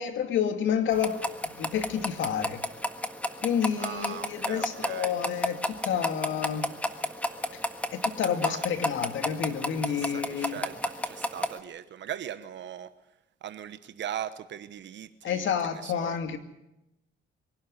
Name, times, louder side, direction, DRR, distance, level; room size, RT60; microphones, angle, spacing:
voice 1, 0.0-2.6 3.4-6.7 7.5-10.7 15.2-16.4, left 8 dB, 75° left, 2.3 m, -30 dB
sound 1, 0.9-11.6, left 1 dB, 5° left, 1.6 m, -33 dB
voice 2, 3.8-5.1 8.4-8.6 9.9-12.9 13.4-15.5 15.8-16.2, right 10 dB, 65° right, 1.1 m, -39 dB
23.5 x 12.0 x 9.6 m
cardioid pair, 90°, 20 cm